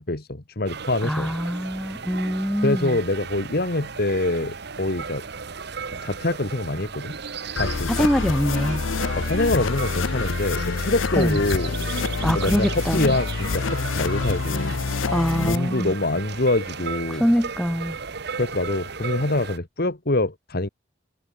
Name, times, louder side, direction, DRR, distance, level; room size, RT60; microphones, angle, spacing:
voice 1, 0.0-1.3 2.6-5.2 6.0-7.2 7.5-8.1 9.2-11.8 12.3-14.8 15.4-17.3 18.4-20.7, left 2 dB, 55° left, 1.9 m, -25 dB
sound 1, 0.7-19.6, right 5 dB, 60° right, 1.2 m, -35 dB
voice 2, 1.0-3.0 7.9-8.8 11.2-11.4 12.2-13.2 15.1-15.9 17.1-18.0, equal, 5° left, 2.1 m, -24 dB
sound 2, 7.6-15.6, left 4 dB, 90° left, 0.7 m, -26 dB
head